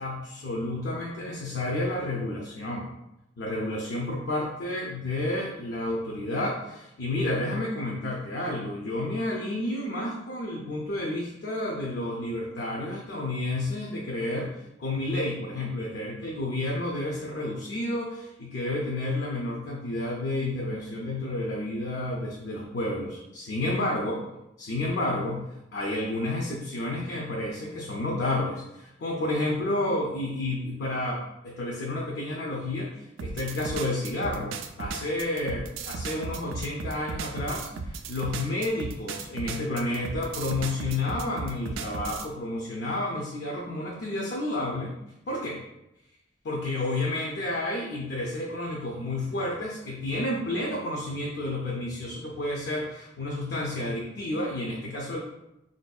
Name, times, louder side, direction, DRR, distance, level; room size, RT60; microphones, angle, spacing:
voice 1, 0.0-2.9 3.4-24.2 24.6-25.4 25.7-44.9 45.3-45.6 46.4-55.2, left 1 dB, 60° left, -2 dB, 0.5 m, -30 dB
sound 1, 33.2-42.3, right 4 dB, 80° right, 0.3 m, -35 dB
4.0 x 2.6 x 2.3 m, 0.90 s
head